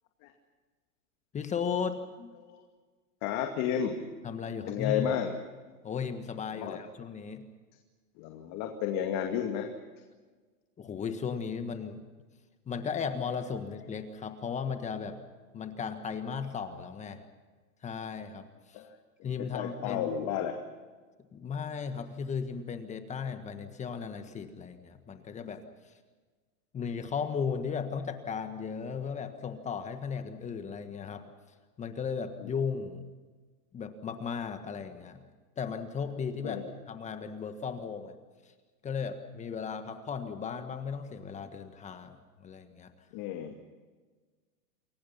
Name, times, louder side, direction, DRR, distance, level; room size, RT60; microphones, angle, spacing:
voice 1, 1.3-2.3 4.2-5.1 5.8-7.4 10.8-12.0 12.7-15.2 15.5-17.2 17.8-18.8 19.2-20.3 21.3-25.9 26.7-31.2 31.8-33.0 33.7-35.2 35.6-38.2 38.8-42.9, left 6 dB, 15° left, 8 dB, 1.5 m, -36 dB
voice 2, 3.2-4.0 4.7-5.3 6.6-6.8 8.2-9.7 18.7-18.8 19.2-20.6 32.4-32.5 36.4-36.7 43.1-43.7, left 9 dB, 35° left, 4 dB, 2.4 m, -32 dB
28.5 x 22.0 x 5.7 m, 1.4 s
hypercardioid pair, 145°, 47 cm